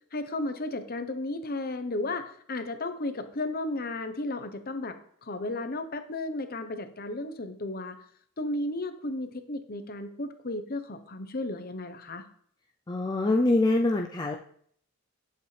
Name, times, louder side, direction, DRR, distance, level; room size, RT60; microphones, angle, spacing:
voice 1, 0.1-5.0 5.2-8.0 8.4-12.2, left 2 dB, 40° left, 8 dB, 0.9 m, -34 dB
voice 2, 12.9-14.4, left 2 dB, 20° left, 1 dB, 0.5 m, -24 dB
11.0 x 8.1 x 3.4 m, 0.63 s
head